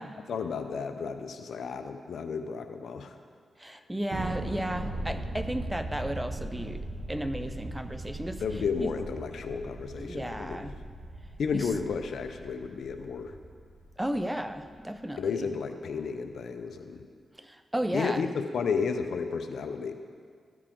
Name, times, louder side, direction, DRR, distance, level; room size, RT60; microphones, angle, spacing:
voice 1, 0.3-3.2 8.4-10.7 11.4-13.4 15.2-17.1 17.9-19.9, left 5 dB, 75° left, 7 dB, 0.5 m, -32 dB
voice 2, 3.6-8.4 8.8-8.9 9.9-10.8 11.5-11.7 14.0-15.5 17.4-18.2, right 1 dB, 10° right, 9 dB, 0.5 m, -34 dB
Thunder, 4.1-14.8, right 1 dB, 70° right, 1.2 m, -39 dB
13.5 x 4.8 x 3.7 m, 2.1 s
cardioid pair, 55°, 0 cm